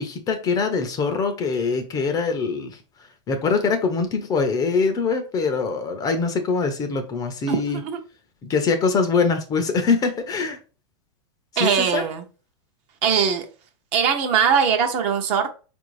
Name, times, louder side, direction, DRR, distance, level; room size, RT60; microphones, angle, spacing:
voice 1, 0.0-2.8 3.3-7.8 8.4-10.6 11.5-12.0, left 4 dB, 25° left, 0.6 m, -23 dB
voice 2, 7.5-8.0 11.6-12.2 13.0-13.5 13.9-15.5, right 7 dB, 40° right, 0.7 m, -21 dB
4.3 x 2.6 x 3.1 m
hypercardioid pair, 130°, 16 cm